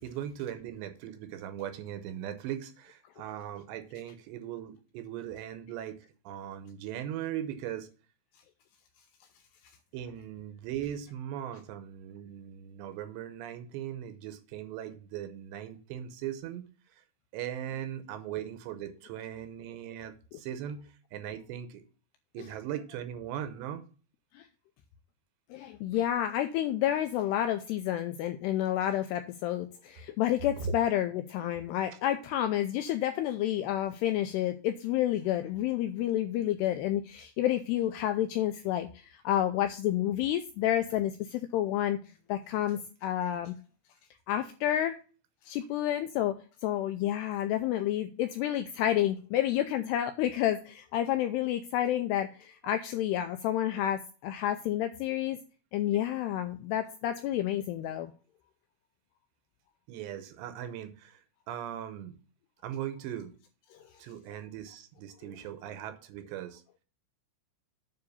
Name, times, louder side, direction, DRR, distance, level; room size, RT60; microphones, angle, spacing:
voice 1, 0.0-6.0 6.3-7.9 9.9-16.7 17.3-21.8 22.3-23.8 30.6-30.8 53.8-53.9 55.9-56.1 59.9-61.2 61.5-62.1 62.6-63.3 64.0-66.6, right 10 dB, 80° right, 2.8 m, -39 dB
voice 2, 25.5-42.0 42.3-43.6 44.3-45.0 45.5-55.4 55.7-58.1 63.7-63.8, left 12 dB, 90° left, 2.4 m, -30 dB
9.3 x 3.9 x 6.9 m
omnidirectional pair, 5.3 m